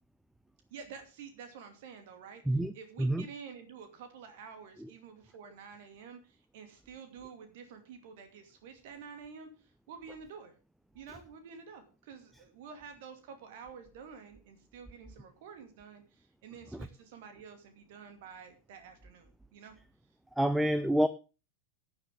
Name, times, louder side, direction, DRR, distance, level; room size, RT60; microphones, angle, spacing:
voice 1, 0.7-10.5 10.9-19.7, right 6 dB, 50° right, 7 dB, 2.5 m, -49 dB
voice 2, 20.4-21.1, right 1 dB, 5° right, 13 dB, 0.7 m, -27 dB
16.5 x 9.3 x 3.7 m, 0.32 s
figure-of-eight pair, 90°, 0 cm